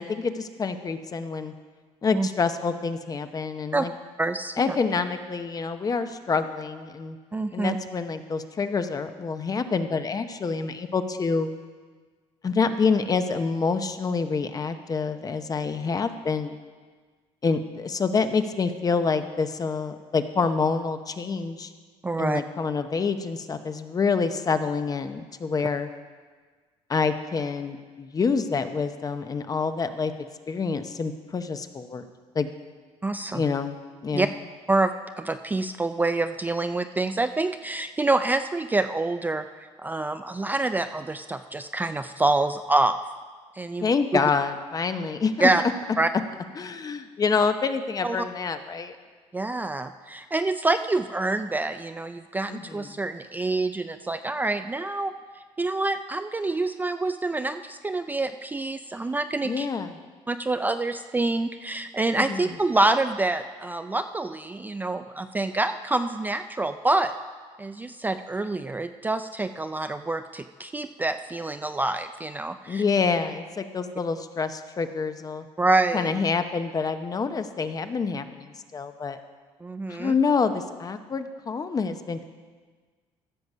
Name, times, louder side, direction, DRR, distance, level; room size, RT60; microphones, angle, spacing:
voice 1, 0.0-1.5 2.0-3.9 4.6-7.2 7.5-11.5 12.4-16.6 17.4-21.7 22.2-25.9 26.9-30.1 30.5-32.1 32.3-32.5 33.3-33.8 34.0-34.3 43.8-45.5 46.6-49.0 52.5-52.9 59.4-59.9 62.2-62.5 72.7-75.4 75.9-79.2 79.9-82.3, left 5 dB, 30° left, 9 dB, 0.8 m, -27 dB
voice 2, 4.2-4.8 7.3-7.8 22.0-22.4 33.0-33.4 34.1-34.3 34.7-34.9 35.2-43.0 43.5-44.2 45.4-45.6 46.0-46.1 47.4-47.5 48.0-48.2 49.3-55.1 55.6-59.7 60.3-67.2 67.6-72.8 75.6-76.1 79.6-80.1, right 2 dB, 15° right, 8 dB, 0.4 m, -26 dB
14.5 x 6.6 x 5.5 m, 1.5 s
cardioid pair, 100°, 12 cm